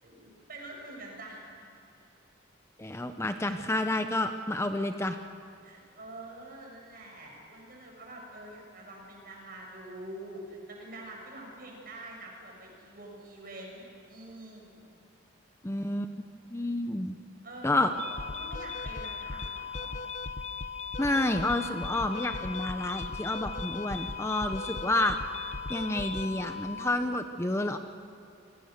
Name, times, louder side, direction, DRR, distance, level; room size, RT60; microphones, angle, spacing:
voice 1, 0.0-1.7 2.9-3.7 5.6-14.8 17.4-17.9 18.4-19.9, right 1 dB, 50° right, -1 dB, 7.2 m, -46 dB
voice 2, 2.8-5.2 15.6-16.1 16.5-17.2 17.6-17.9 21.0-25.2 25.7-27.8, left 1 dB, 15° left, 7 dB, 0.7 m, -29 dB
sound 1, 17.9-26.9, left 4 dB, 40° left, 1.0 m, -37 dB
28.0 x 23.5 x 6.6 m, 2.6 s
head